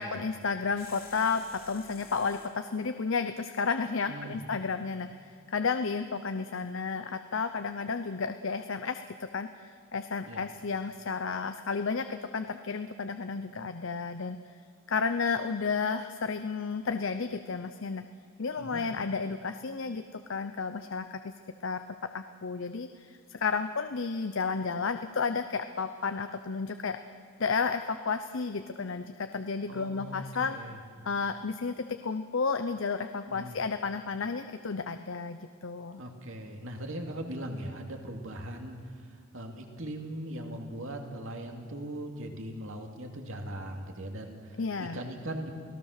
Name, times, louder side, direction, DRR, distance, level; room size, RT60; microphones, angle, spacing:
voice 1, 0.0-14.4 14.9-18.0 18.4-21.3 21.6-21.8 22.1-27.0 27.4-30.6 31.0-36.0 44.6-45.0, left 5 dB, 60° left, 9 dB, 0.7 m, -32 dB
sound 1, 0.8-2.6, left 6 dB, 40° left, 2.7 m, -51 dB
voice 2, 4.1-4.4 10.3-10.4 18.6-18.8 29.7-30.8 33.3-33.6 36.0-38.8 39.3-45.5, right 1 dB, 65° right, 3 dB, 2.5 m, -39 dB
29.0 x 18.5 x 6.7 m, 2.1 s
head